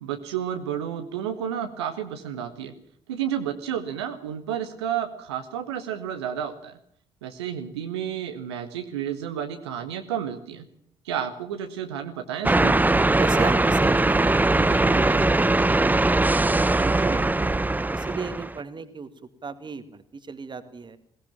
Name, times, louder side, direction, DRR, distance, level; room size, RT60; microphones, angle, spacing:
voice 1, 0.0-2.7 3.1-6.8 7.2-10.7 11.0-12.7, right 9 dB, 75° right, 6 dB, 1.5 m, -31 dB
sound 1, 12.4-18.6, right 2 dB, 10° right, 0.9 m, -21 dB
voice 2, 13.2-17.6 17.9-19.1 19.4-21.0, right 5 dB, 35° right, 11 dB, 2.2 m, -35 dB
21.5 x 17.5 x 7.4 m, 0.62 s
figure-of-eight pair, 45°, 14 cm